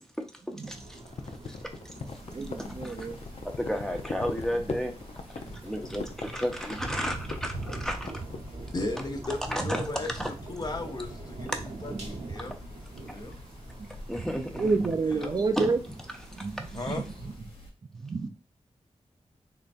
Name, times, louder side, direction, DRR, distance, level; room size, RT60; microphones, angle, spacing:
voice 1, 0.3-1.0 1.4-1.6 2.6-3.1 3.4-5.0 5.6-8.1 9.5-9.9 10.2-10.3 11.5-11.6 12.4-12.5 14.1-14.7 15.6-15.7 16.3-17.0, equal, 5° left, 0.6 m, -33 dB
sound 1, 0.6-17.4, right 2 dB, 80° right, 1.1 m, -44 dB
sound 2, 1.0-8.5, left 4 dB, 70° left, 0.5 m, -40 dB
sound 3, 2.0-17.7, left 1 dB, 55° left, 1.3 m, -48 dB
voice 2, 2.3-3.2 5.4-5.6 9.6-9.7 12.1-12.2 14.1-14.3 14.6-15.8 16.4-17.3 17.9-18.3, right 4 dB, 35° right, 0.4 m, -30 dB
voice 3, 8.7-11.5 11.8-12.5 13.0-13.3 15.0-15.4 16.7-17.0, left 2 dB, 35° left, 0.8 m, -36 dB
3.8 x 3.3 x 2.5 m
wide cardioid pair, 95°, 11 cm